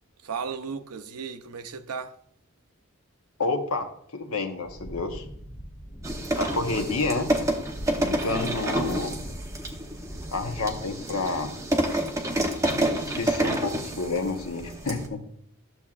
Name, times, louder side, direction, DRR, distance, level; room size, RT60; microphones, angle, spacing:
voice 1, 0.2-2.1 6.7-6.8 8.3-8.5, right 6 dB, 85° right, 0.6 m, -35 dB
voice 2, 3.4-5.3 6.4-7.3 8.0-9.2 10.3-11.5 13.1-15.2, left 3 dB, 75° left, 1.0 m, -29 dB
sound 1, 4.6-10.8, equal, 40° left, 2.4 m, -41 dB
sound 2, 6.0-15.1, right 1 dB, 15° right, 0.8 m, -29 dB
12.0 x 7.1 x 2.4 m
head